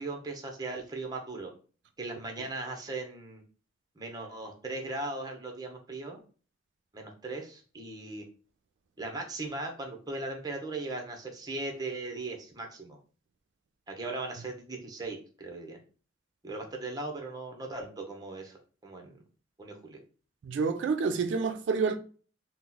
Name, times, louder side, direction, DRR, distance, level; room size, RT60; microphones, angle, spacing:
voice 1, 0.0-1.5 2.0-3.4 4.0-6.2 6.9-8.2 9.0-13.0 13.9-15.8 16.4-19.1 19.6-20.0, right 2 dB, 20° right, 0.7 m, -38 dB
voice 2, 20.4-22.0, right 5 dB, 85° right, 0.3 m, -28 dB
2.9 x 2.0 x 3.8 m
head